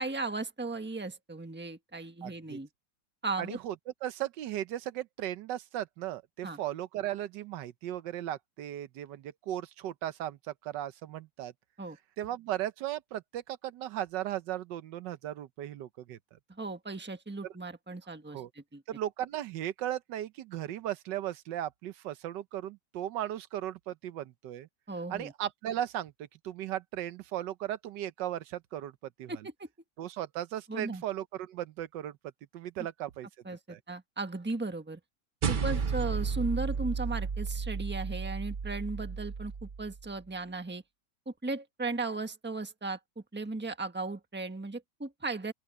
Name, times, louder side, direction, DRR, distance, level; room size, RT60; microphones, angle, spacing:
voice 1, 0.0-2.7 3.2-3.6 6.4-6.6 11.8-12.0 16.5-18.8 24.9-25.3 29.3-29.7 30.7-31.0 33.4-35.0 35.5-40.8 41.3-43.0 43.3-45.5, right 3 dB, 5° right, 1.2 m, -36 dB
voice 2, 2.2-2.6 3.4-3.7 4.0-11.5 12.2-16.2 17.4-17.5 18.3-18.5 18.9-24.7 25.1-29.4 30.0-32.2 32.5-33.3 33.7-33.8, right 12 dB, 85° right, 1.4 m, -36 dB
sound 1, 35.4-40.1, right 5 dB, 45° right, 0.6 m, -33 dB
open air
omnidirectional pair, 1.9 m